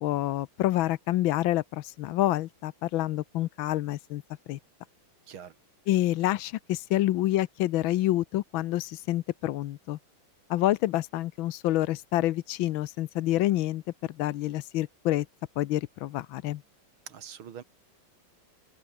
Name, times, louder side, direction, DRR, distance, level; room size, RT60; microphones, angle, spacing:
voice 1, 0.0-4.2 4.5-4.6 5.9-10.0 10.5-13.8 14.1-15.3 15.6-16.6, left 15 dB, 80° left, 1.5 m, -27 dB
voice 2, 17.1-17.6, right 8 dB, 85° right, 2.5 m, -43 dB
open air
omnidirectional pair, 2.2 m